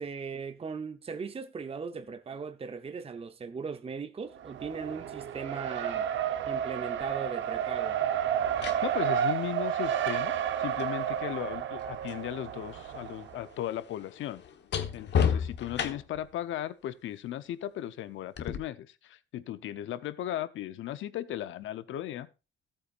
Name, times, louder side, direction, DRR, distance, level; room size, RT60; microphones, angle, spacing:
voice 1, 0.0-6.1 6.5-8.0, right 5 dB, 30° right, 0.8 m, -38 dB
Race car auto racing, 4.3-13.4, right 9 dB, 70° right, 0.9 m, -31 dB
sound 1, 7.0-7.2 8.2-12.3 12.6-16.3 18.4-18.6, left 7 dB, 60° left, 1.2 m, -34 dB
voice 2, 8.6-14.4 14.9-22.3, left 12 dB, 75° left, 0.8 m, -36 dB
14.0 x 8.7 x 2.5 m
cardioid pair, 90°, 20 cm